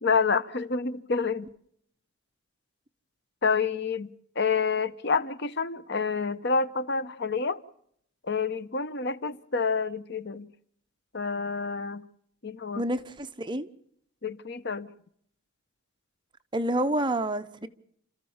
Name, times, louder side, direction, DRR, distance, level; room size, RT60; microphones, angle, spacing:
voice 1, 0.0-1.5 3.4-4.1 4.3-7.6 8.2-10.5 11.1-12.0 12.4-12.8 14.2-14.9, left 5 dB, 55° left, 1.0 m, -28 dB
voice 2, 12.8-13.7 16.5-17.7, right 1 dB, 20° right, 1.0 m, -28 dB
30.0 x 14.0 x 7.2 m
head